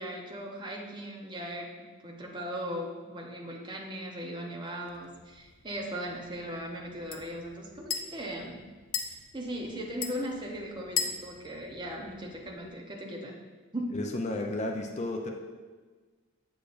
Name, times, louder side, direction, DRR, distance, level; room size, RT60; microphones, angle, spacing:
voice 1, 0.0-8.6 9.1-13.3 13.7-14.0, equal, 20° right, -1 dB, 0.9 m, -38 dB
sound 1, 4.9-12.7, left 7 dB, 90° left, 0.7 m, -40 dB
voice 2, 13.9-15.3, left 2 dB, 30° left, 2 dB, 0.5 m, -32 dB
7.9 x 6.8 x 2.6 m, 1.4 s
head